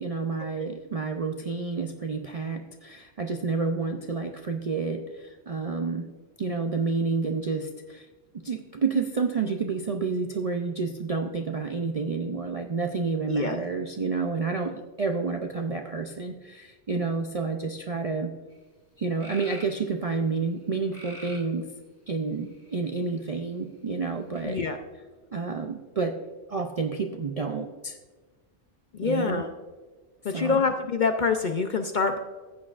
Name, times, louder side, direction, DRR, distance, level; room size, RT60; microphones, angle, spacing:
voice 1, 0.0-6.1 6.4-8.1 8.4-18.3 19.0-21.7 22.1-24.6 25.3-26.1 26.5-28.0 29.0-29.4 30.3-30.6, right 4 dB, 50° right, 4 dB, 0.4 m, -29 dB
sound 1, 18.5-18.6 19.2-19.8 20.9-21.5 22.4-23.0 24.3-24.4, left 1 dB, 15° left, 2.0 m, -44 dB
voice 2, 24.4-24.8 28.9-29.5 30.2-32.2, left 4 dB, 55° left, 6 dB, 0.6 m, -26 dB
15.0 x 8.5 x 2.4 m, 1.3 s
omnidirectional pair, 1.3 m